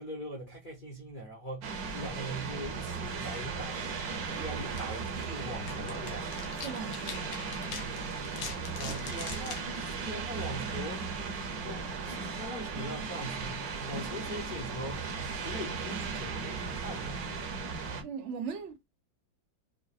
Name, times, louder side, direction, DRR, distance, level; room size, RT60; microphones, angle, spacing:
voice 1, 0.0-6.3 8.8-9.7 10.0-11.1 11.6-15.2 15.4-17.6, equal, 45° left, 0.6 m, -41 dB
sound 1, 1.6-18.0, right 4 dB, 60° right, 1.1 m, -36 dB
sound 2, 3.9-10.7, left 5 dB, 85° left, 1.8 m, -45 dB
voice 2, 6.6-7.3 8.9-9.0 18.0-18.8, right 6 dB, 75° right, 0.6 m, -39 dB
5.0 x 2.4 x 2.3 m
omnidirectional pair, 2.2 m